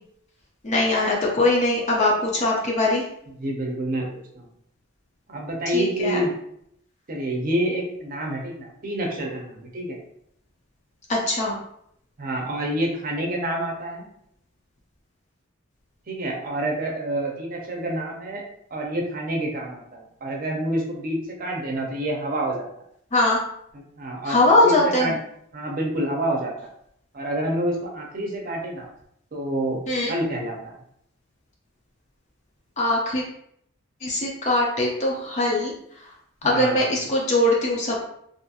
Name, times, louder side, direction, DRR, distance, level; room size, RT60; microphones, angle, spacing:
voice 1, 0.6-3.0 5.7-6.2 11.1-11.6 23.1-23.4 24.2-25.1 29.9-30.1 32.8-33.2 34.0-35.7 36.4-38.0, left 1 dB, 35° left, -2 dB, 0.5 m, -21 dB
voice 2, 3.3-4.5 5.3-6.3 7.1-10.0 12.2-14.1 16.1-18.4 18.7-22.6 23.7-25.2 25.5-26.5 27.1-28.9 29.3-29.8 30.1-30.8 36.4-36.9, right 1 dB, 40° right, 0 dB, 0.6 m, -28 dB
2.7 x 2.4 x 2.7 m, 0.71 s
head